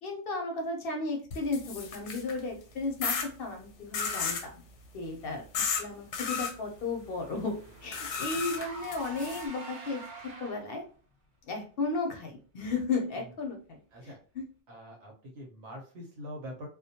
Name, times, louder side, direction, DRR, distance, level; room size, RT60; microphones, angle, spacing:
voice 1, 0.0-4.6 4.9-10.8 11.5-13.8 14.0-14.4, left 3 dB, 60° left, 3 dB, 0.7 m, -34 dB
sound 1, 1.3-2.4 3.0-3.3 3.9-4.5 5.5-5.8 6.1-6.5 7.9-9.4, left 6 dB, 90° left, 0.9 m, -33 dB
Car / Engine, 5.9-10.9, right 2 dB, 50° right, 0.8 m, -47 dB
voice 2, 14.7-16.7, equal, 80° right, 1 dB, 1.1 m, -44 dB
2.2 x 2.1 x 2.7 m, 0.40 s
omnidirectional pair, 1.2 m